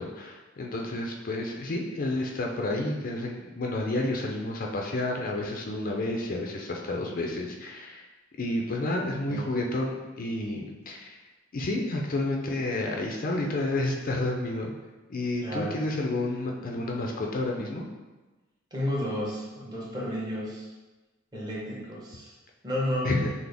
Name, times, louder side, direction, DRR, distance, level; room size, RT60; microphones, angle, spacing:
voice 1, 0.0-8.0 8.4-11.2 11.5-14.7 15.1-17.8 23.0-23.3, left 2 dB, 45° left, 0 dB, 0.5 m, -30 dB
voice 2, 9.3-9.6 15.4-15.8 18.7-20.7 21.3-22.3 22.6-23.1, equal, 20° right, -5 dB, 1.0 m, -32 dB
5.9 x 2.0 x 3.4 m, 1.2 s
head